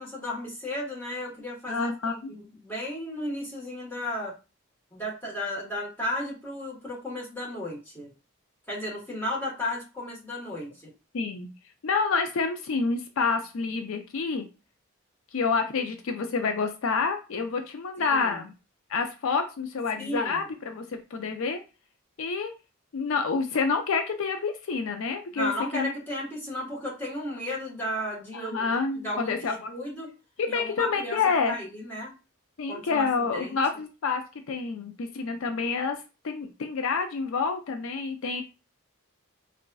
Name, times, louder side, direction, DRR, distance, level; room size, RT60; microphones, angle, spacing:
voice 1, 0.0-4.3 4.9-8.1 8.7-10.9 18.0-18.4 20.0-20.4 25.3-28.7 28.9-29.3 29.7-30.1 30.5-31.2 31.5-32.1 32.7-33.6, left 1 dB, 10° left, -5 dB, 1.2 m, -34 dB
voice 2, 1.7-2.3 10.5-10.6 11.1-11.5 11.8-14.5 15.3-18.5 18.9-21.6 22.2-22.5 22.9-25.9 28.3-29.7 30.4-31.6 32.6-38.4, left 4 dB, 75° left, 6 dB, 0.4 m, -28 dB
3.9 x 2.4 x 2.3 m, 0.30 s
head